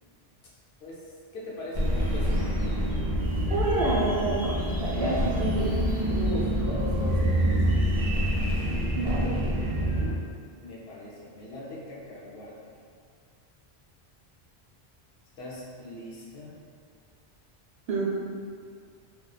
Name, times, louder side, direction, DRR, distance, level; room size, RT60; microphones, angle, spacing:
voice 1, 1.3-2.6 6.1-7.6 10.6-12.7 15.4-16.6, left 1 dB, 75° left, -6 dB, 0.9 m, -39 dB
sound 1, 1.7-10.1, equal, 55° right, 0.4 m, -26 dB
voice 2, 3.5-4.5 4.8-5.7 8.9-9.4 17.9-18.0, right 2 dB, 80° right, -6 dB, 0.9 m, -27 dB
2.7 x 2.1 x 2.3 m, 2.2 s
omnidirectional pair, 1.1 m